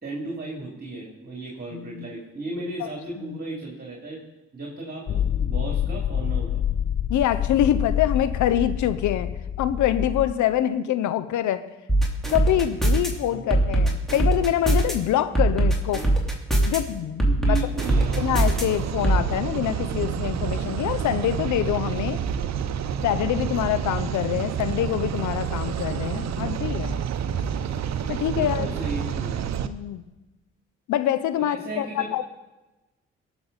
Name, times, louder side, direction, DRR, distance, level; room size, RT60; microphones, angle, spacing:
voice 1, 0.0-4.2 4.5-6.6 13.3-13.6 17.2-18.1 28.2-29.4 31.4-32.1, right 2 dB, 30° right, -3 dB, 3.0 m, -35 dB
voice 2, 1.7-2.1 3.2-3.4 7.1-9.3 9.6-11.6 12.3-16.0 16.7-17.6 18.2-22.2 23.0-27.0 28.1-28.7 29.6-30.0 30.9-32.2, left 11 dB, 65° left, 13 dB, 0.8 m, -25 dB
sound 1, 5.1-10.3, left 9 dB, 30° left, 0.4 m, -27 dB
sound 2, 11.9-13.1 13.5-14.9 15.4-16.8 17.2-18.6 19.0-19.2, right 1 dB, ahead, 3.3 m, -20 dB
sound 3, 17.8-29.7, right 8 dB, 60° right, 0.8 m, -28 dB
18.0 x 7.0 x 4.1 m, 1.1 s
hypercardioid pair, 45°, 31 cm